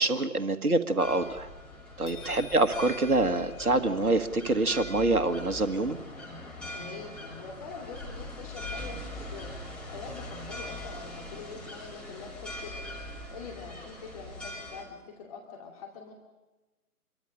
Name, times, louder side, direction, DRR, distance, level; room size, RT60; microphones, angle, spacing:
voice 1, 0.0-1.5 2.0-6.0, right 2 dB, 70° right, 8 dB, 1.7 m, -26 dB
sound 1, 1.0-14.8, left 1 dB, ahead, 2.8 m, -42 dB
voice 2, 2.0-2.3 6.7-16.1, left 5 dB, 25° left, -1 dB, 2.4 m, -45 dB
sound 2, 2.1-4.2, left 7 dB, 65° left, 7.2 m, -48 dB
26.5 x 23.0 x 6.6 m, 1.1 s
figure-of-eight pair, 145°, 46 cm